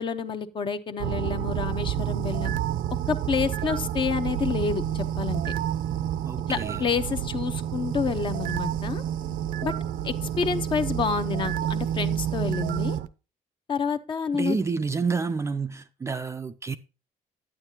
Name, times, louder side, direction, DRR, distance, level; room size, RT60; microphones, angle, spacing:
voice 1, 0.0-2.5 3.1-5.4 6.5-9.0 9.6-9.7 10.0-13.0 13.7-14.6, left 5 dB, 35° left, 0.8 m, -28 dB
sound 1, 1.0-13.1, right 10 dB, 75° right, 0.6 m, -29 dB
voice 2, 6.3-6.9 14.3-16.8, right 4 dB, 20° right, 0.4 m, -29 dB
9.9 x 9.1 x 2.8 m
cardioid pair, 145°, 14 cm